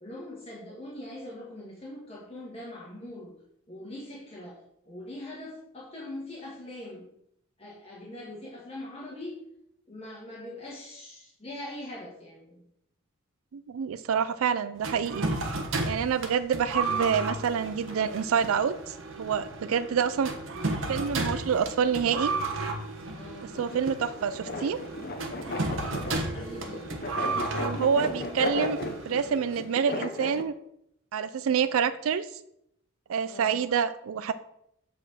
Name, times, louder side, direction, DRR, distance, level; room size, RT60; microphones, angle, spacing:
voice 1, 0.0-3.4 3.7-4.6 4.9-7.1 7.6-9.4 9.9-12.7 23.1-23.5 25.5-26.9 33.3-33.6, left 1 dB, 30° left, -5 dB, 1.6 m, -42 dB
voice 2, 13.5-15.3 15.8-20.3 20.9-22.3 23.5-24.8 27.6-28.8 29.1-30.5 31.1-32.3 33.1-34.3, right 7 dB, 90° right, 13 dB, 0.4 m, -27 dB
sound 1, 14.8-29.5, right 3 dB, 70° right, 1.2 m, -33 dB
sound 2, 23.5-30.4, left 2 dB, 45° left, 0.7 m, -35 dB
7.7 x 4.3 x 6.1 m, 0.76 s
head